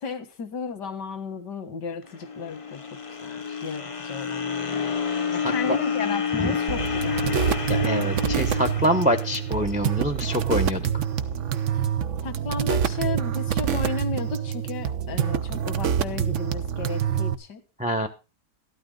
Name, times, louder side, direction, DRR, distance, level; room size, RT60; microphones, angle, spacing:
voice 1, 0.0-2.8 3.2-4.9 5.3-7.5 12.2-17.6, left 4 dB, 90° left, 9 dB, 2.2 m, -34 dB
sound 1, 2.1-10.3, left 6 dB, 30° left, 0.7 m, -29 dB
voice 2, 5.4-5.8 6.4-6.5 7.7-11.0 17.8-18.1, equal, 5° right, 7 dB, 0.8 m, -26 dB
sound 2, 6.7-17.3, right 8 dB, 55° right, 1.0 m, -26 dB
13.0 x 12.5 x 3.8 m, 0.30 s
omnidirectional pair, 1.8 m